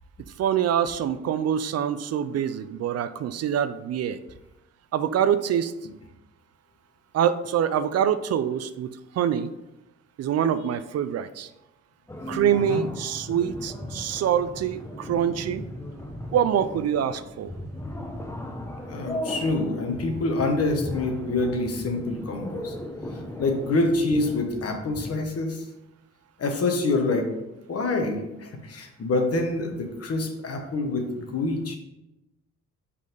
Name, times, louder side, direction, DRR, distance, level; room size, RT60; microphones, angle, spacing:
voice 1, 0.4-4.2 4.9-5.7 7.1-8.9 9.2-9.5 10.2-11.5 12.3-15.6 16.3-17.5, right 9 dB, 55° right, 12 dB, 0.4 m, -25 dB
sound 1, 12.1-25.2, left 1 dB, 10° left, 0.8 m, -37 dB
voice 2, 18.9-22.7 23.1-25.6 26.4-27.3 27.7-31.8, left 2 dB, 50° left, 4 dB, 1.2 m, -26 dB
5.2 x 4.1 x 5.2 m, 0.96 s
cardioid pair, 90°, 30 cm